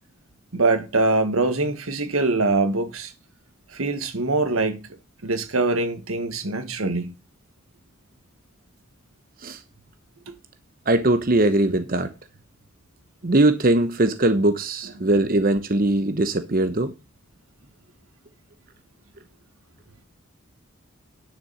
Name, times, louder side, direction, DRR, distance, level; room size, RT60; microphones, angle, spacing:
voice 1, 0.5-3.1 3.7-4.8 5.2-7.1 10.3-10.4 15.0-15.1, right 3 dB, 90° right, 1.7 m, -23 dB
voice 2, 10.9-12.1 13.2-16.9, right 2 dB, 40° right, 0.9 m, -20 dB
10.0 x 6.9 x 5.7 m
head